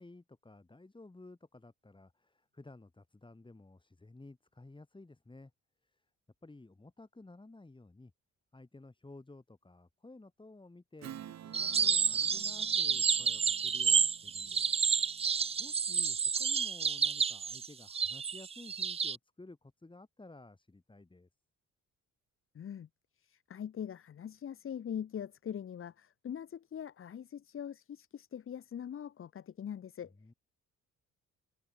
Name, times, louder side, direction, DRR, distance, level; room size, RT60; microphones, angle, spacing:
voice 1, 0.0-5.5 5.8-6.1 6.4-8.1 8.5-14.8 15.6-21.3 30.1-30.3, left 2 dB, 15° left, 7.3 m, -54 dB
Strum, 11.0-15.9, right 10 dB, 60° right, 1.7 m, -52 dB
sound 1, 11.5-19.2, right 6 dB, 20° right, 0.3 m, -30 dB
voice 2, 22.5-22.9 23.2-30.1, left 9 dB, 45° left, 1.0 m, -42 dB
open air
cardioid pair, 90°, 30 cm